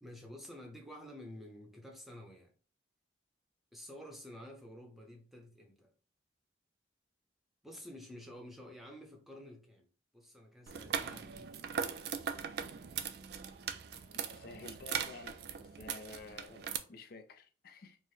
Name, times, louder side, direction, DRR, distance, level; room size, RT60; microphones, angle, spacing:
voice 1, 0.0-2.5 3.7-5.9 7.6-9.9 10.1-11.8, left 1 dB, ahead, 0.7 m, -51 dB
sound 1, 10.7-16.8, right 7 dB, 55° right, 0.3 m, -40 dB
voice 2, 14.1-18.0, left 3 dB, 50° left, 0.4 m, -51 dB
4.5 x 2.1 x 3.1 m
head